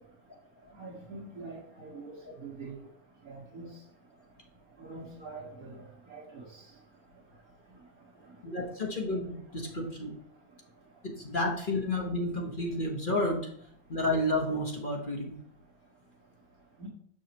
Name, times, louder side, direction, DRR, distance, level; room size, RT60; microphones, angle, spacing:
voice 1, 0.8-2.1 2.4-2.8 3.3-3.7 4.8-5.8 6.1-6.4 16.8-16.9, right 3 dB, 60° right, -3 dB, 1.7 m, -44 dB
voice 2, 8.4-10.1 11.0-13.5 13.9-15.3, left 1 dB, 35° left, 0 dB, 1.0 m, -31 dB
6.3 x 6.3 x 2.9 m, 0.67 s
omnidirectional pair, 1.9 m